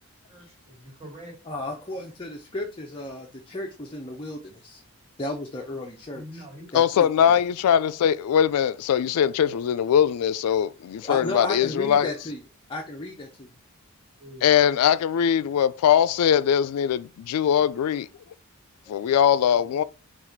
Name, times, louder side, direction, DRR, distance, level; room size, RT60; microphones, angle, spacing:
voice 1, 0.3-1.4 6.1-6.8 14.2-14.5 18.8-19.0 19.5-19.8, equal, 25° right, 1.7 m, -44 dB
voice 2, 1.4-4.8 5.2-6.4 6.7-7.4 11.0-12.4 12.7-13.5, left 2 dB, 25° left, 0.5 m, -34 dB
voice 3, 6.7-12.1 14.4-18.1 18.9-19.8, left 9 dB, 85° left, 0.3 m, -21 dB
4.0 x 2.4 x 4.4 m
head